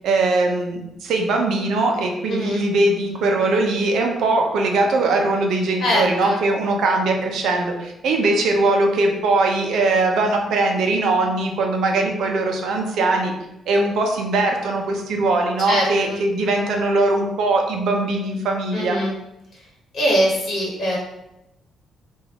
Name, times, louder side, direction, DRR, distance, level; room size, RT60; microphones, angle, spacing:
voice 1, 0.0-13.3 13.7-19.0, right 2 dB, 75° right, 2 dB, 0.7 m, -20 dB
voice 2, 2.3-2.6 5.8-6.4 15.7-16.2 18.7-19.1 19.5-19.6 19.9-21.0, equal, 55° left, -4 dB, 1.1 m, -22 dB
3.4 x 2.6 x 3.5 m, 0.87 s
cardioid pair, 90°, 0 cm